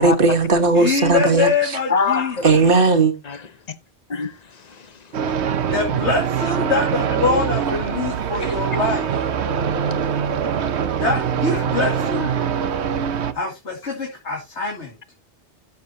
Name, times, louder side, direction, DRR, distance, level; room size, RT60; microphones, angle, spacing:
voice 1, 0.0-1.8 2.4-3.1, right 3 dB, 50° right, 1.6 m, -17 dB
voice 2, 0.7-2.3 5.7-9.1 11.0-12.3 13.3-14.9, left 4 dB, 80° left, 2.5 m, -24 dB
voice 3, 1.9-2.5 3.2-3.4 4.1-5.3 8.4-8.5 11.5-11.7 14.6-14.7, left 5 dB, 40° left, 0.9 m, -26 dB
sound 1, 5.1-13.3, right 7 dB, 75° right, 1.1 m, -23 dB
12.5 x 7.0 x 2.8 m
omnidirectional pair, 1.2 m